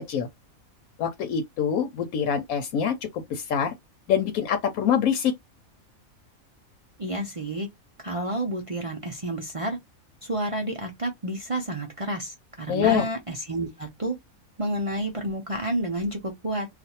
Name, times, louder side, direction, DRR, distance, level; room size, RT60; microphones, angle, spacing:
voice 1, 1.0-3.7 4.1-5.3 12.7-13.1, left 8 dB, 80° left, 1.1 m, -25 dB
voice 2, 7.0-7.7 8.0-9.8 10.2-14.2 14.6-16.7, right 1 dB, 45° right, 0.4 m, -30 dB
2.5 x 2.4 x 4.1 m
omnidirectional pair, 1.5 m